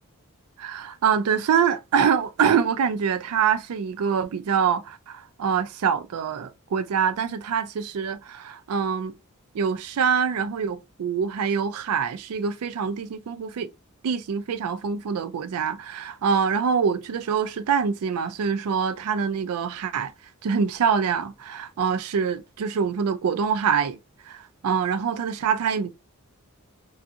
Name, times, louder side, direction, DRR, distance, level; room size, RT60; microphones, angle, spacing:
voice 1, 0.6-9.1 9.5-13.7 14.0-20.1 20.4-24.0 24.3-25.9, right 6 dB, 85° right, 0.4 m, -25 dB
2.6 x 2.4 x 2.3 m
head